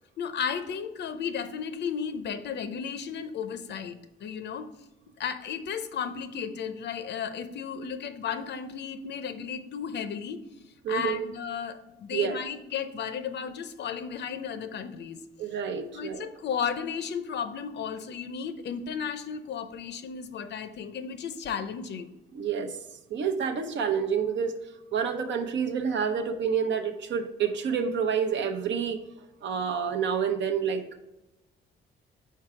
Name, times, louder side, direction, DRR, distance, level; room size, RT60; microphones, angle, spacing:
voice 1, 0.2-4.7 5.2-10.4 10.9-15.2 15.9-22.1, left 7 dB, 60° left, 10 dB, 0.6 m, -34 dB
voice 2, 10.8-11.3 12.1-12.4 15.4-16.2 22.3-22.8 23.1-24.6 24.9-29.0 29.4-31.0, right 7 dB, 65° right, 6 dB, 0.8 m, -28 dB
4.6 x 4.6 x 4.8 m, 0.98 s
cardioid pair, 90°, 20 cm